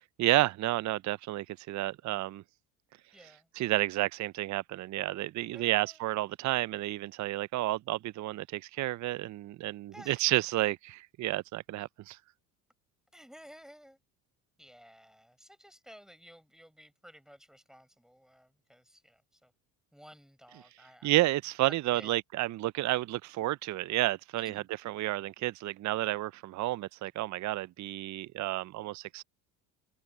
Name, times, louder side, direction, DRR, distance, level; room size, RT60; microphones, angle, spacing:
voice 1, 0.2-2.4 3.6-12.2 21.0-29.2, right 16 dB, 40° right, 0.6 m, -31 dB
voice 2, 3.1-3.7 5.5-6.0 9.9-10.2 13.1-14.0 14.6-19.5 19.9-21.2 21.7-22.1 24.4-24.7, equal, ahead, 4.9 m, -55 dB
hypercardioid pair, 65°, 44 cm